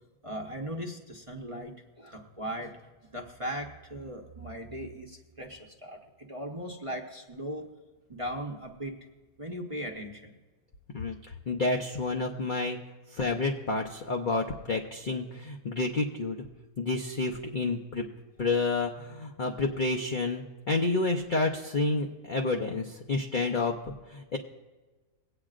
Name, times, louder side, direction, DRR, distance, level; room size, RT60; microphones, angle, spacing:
voice 1, 0.2-2.7 3.1-7.7 8.1-9.0 9.4-10.4, equal, 25° right, 0 dB, 0.7 m, -38 dB
voice 2, 11.5-12.8 13.1-16.4 16.8-18.0 18.4-24.4, left 3 dB, 55° left, 1 dB, 0.5 m, -29 dB
23.5 x 8.8 x 2.4 m, 1.3 s
omnidirectional pair, 1.7 m